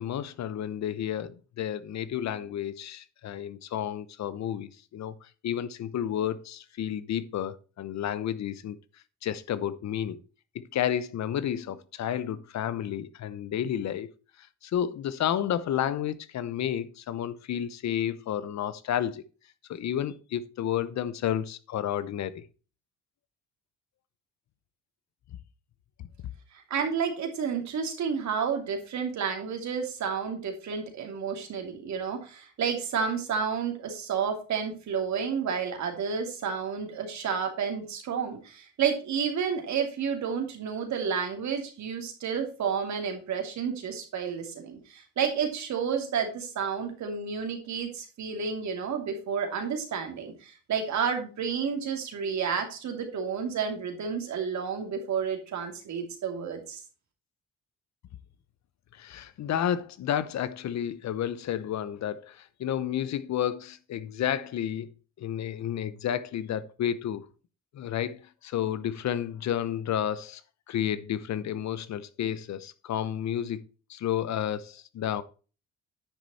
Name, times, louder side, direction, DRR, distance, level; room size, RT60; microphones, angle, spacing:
voice 1, 0.0-8.8 9.2-10.2 10.5-14.1 14.6-19.2 19.7-22.4 26.0-26.1 58.9-64.9 65.2-67.2 67.7-70.4 70.7-73.6 73.9-75.2, left 10 dB, 65° left, 0.8 m, -31 dB
voice 2, 26.5-56.8, right 6 dB, 65° right, 2.7 m, -31 dB
9.7 x 6.3 x 4.2 m
cardioid pair, 90°, 30 cm